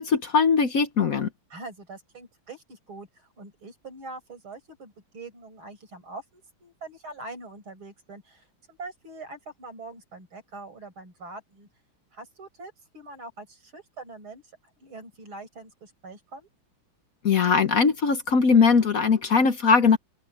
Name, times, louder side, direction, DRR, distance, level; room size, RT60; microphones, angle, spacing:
voice 1, 0.0-1.3 17.2-20.0, left 5 dB, 50° left, 1.2 m, -20 dB
voice 2, 1.5-11.7 12.1-14.4 14.8-16.5, right 3 dB, 85° right, 6.1 m, -43 dB
open air
omnidirectional pair, 2.2 m